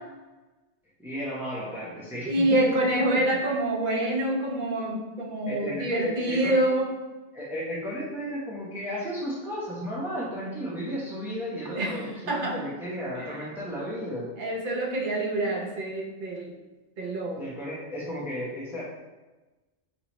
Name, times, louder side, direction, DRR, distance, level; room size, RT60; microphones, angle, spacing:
voice 1, 1.0-2.6 5.4-6.5 7.3-14.3 17.4-18.8, equal, ahead, -6 dB, 0.9 m, -34 dB
voice 2, 2.3-6.9 11.5-12.6 13.2-13.4 14.4-16.5 17.0-17.4, right 1 dB, 45° right, -1 dB, 0.8 m, -27 dB
4.7 x 3.4 x 3.1 m, 1.2 s
omnidirectional pair, 1.3 m